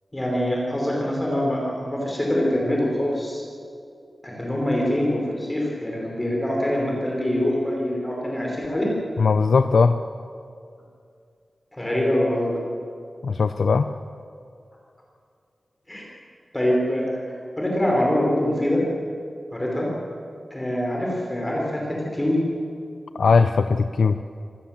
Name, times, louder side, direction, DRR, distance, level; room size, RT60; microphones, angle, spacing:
voice 1, 0.1-3.4 4.2-8.9 11.7-12.6 15.9-16.0 16.5-17.1 17.6-18.8 19.5-19.9 20.5-22.4, left 1 dB, 15° left, -2 dB, 4.9 m, -24 dB
voice 2, 9.2-10.0 13.2-13.9 23.2-24.2, left 4 dB, 80° left, 10 dB, 0.6 m, -19 dB
25.5 x 19.0 x 7.5 m, 2.4 s
wide cardioid pair, 105°, 0 cm